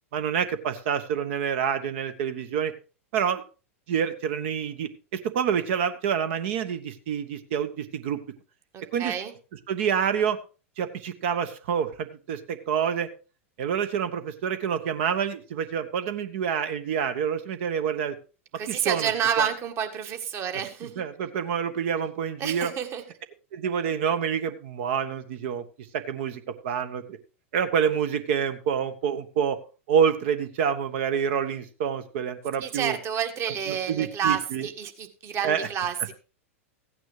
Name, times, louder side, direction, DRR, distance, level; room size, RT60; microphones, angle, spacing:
voice 1, 0.1-2.7 3.1-3.4 3.9-8.2 8.9-9.1 9.7-10.4 10.8-13.1 13.6-18.2 18.7-19.1 19.4-19.5 20.8-22.7 23.5-25.6 25.9-27.2 27.5-29.6 29.9-33.0 33.7-34.7 35.4-35.7, right 7 dB, 60° right, 9 dB, 1.1 m, -27 dB
voice 2, 8.7-9.3 18.5-21.0 22.4-23.0 32.6-36.1, right 8 dB, 35° right, 6 dB, 1.6 m, -29 dB
15.0 x 9.1 x 3.2 m, 0.33 s
hypercardioid pair, 95°, 7 cm